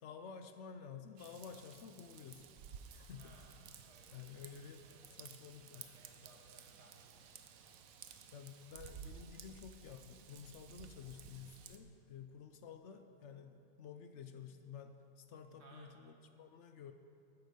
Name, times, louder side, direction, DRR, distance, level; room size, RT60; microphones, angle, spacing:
voice 1, 0.0-2.4 2.9-3.4 4.1-5.9 8.3-16.9, left 7 dB, 65° left, 8 dB, 0.7 m, -52 dB
Raindrop / Vehicle horn car horn honking / Trickle dribble, 1.2-11.8, right 7 dB, 65° right, 1.0 m, -55 dB
voice 2, 3.1-4.2 4.8-5.2 5.7-8.6 10.9-11.1 11.9-12.1 15.6-15.9, right 2 dB, 40° right, -1 dB, 1.9 m, -64 dB
12.5 x 9.6 x 5.2 m, 2.5 s
omnidirectional pair, 1.8 m